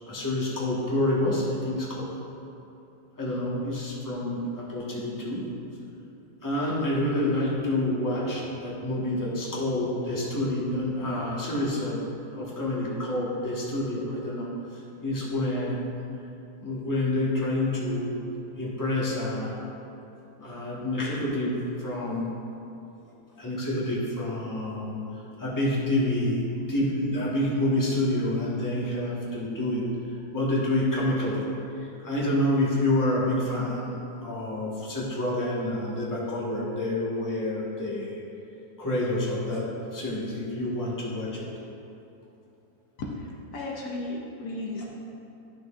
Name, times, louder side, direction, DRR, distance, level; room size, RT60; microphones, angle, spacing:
voice 1, 0.1-2.1 3.2-5.5 5.8-5.9 6.4-15.8 16.6-18.2 18.6-19.6 20.4-22.3 23.0-23.1 23.4-26.4 26.7-29.9 30.3-31.4 31.7-38.2 38.8-39.7 39.9-41.5, left 1 dB, 15° left, -6 dB, 1.2 m, -28 dB
voice 2, 43.0-44.9, left 2 dB, 70° left, -2 dB, 1.3 m, -35 dB
12.0 x 6.0 x 2.5 m, 2.8 s
omnidirectional pair, 1.8 m